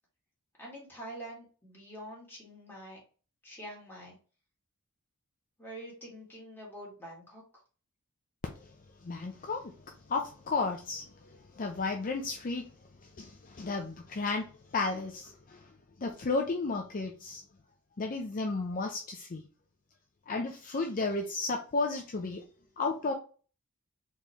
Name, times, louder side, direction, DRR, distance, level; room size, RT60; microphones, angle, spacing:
voice 1, 0.6-3.0 3.4-4.2 5.6-7.4, right 1 dB, 10° left, 2.3 m, -46 dB
voice 2, 9.0-9.7 10.1-11.1 11.6-12.6 13.2-15.6 16.0-17.4 18.0-19.4 20.3-22.4 22.8-23.1, left 3 dB, 40° left, 0.5 m, -33 dB
4.3 x 3.6 x 3.1 m
head